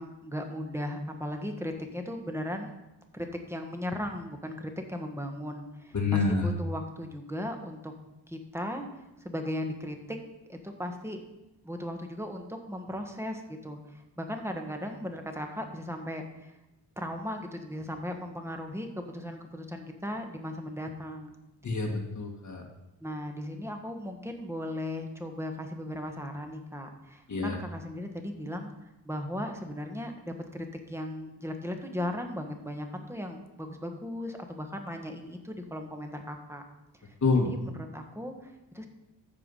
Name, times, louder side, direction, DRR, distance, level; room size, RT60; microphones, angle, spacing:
voice 1, 0.0-2.8 3.1-7.9 8.3-10.2 10.5-11.2 11.6-16.5 17.0-21.4 23.0-28.7 29.0-36.6 37.0-37.1 37.4-38.9, left 1 dB, 5° right, 4 dB, 1.5 m, -37 dB
voice 2, 5.9-6.5 21.6-22.6 27.3-27.6 37.2-37.5, left 4 dB, 45° left, 1 dB, 1.6 m, -27 dB
13.5 x 4.9 x 5.5 m, 0.96 s
cardioid pair, 85°, 42 cm